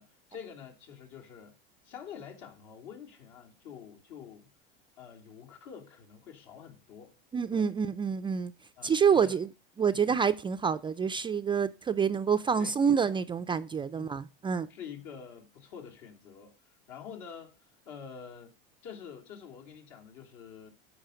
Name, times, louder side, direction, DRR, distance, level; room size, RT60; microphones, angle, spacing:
voice 1, 0.0-1.6 1.8-4.5 5.0-7.1 7.5-7.7 8.8-9.4 9.8-10.2 12.6-12.7 13.9-14.1 14.7-18.5 18.8-20.7, left 7 dB, 65° left, 2.9 m, -47 dB
voice 2, 7.3-8.5 8.8-9.5 9.8-14.7, right 6 dB, 15° right, 0.4 m, -27 dB
13.0 x 5.3 x 5.0 m
supercardioid pair, 115°, 29 cm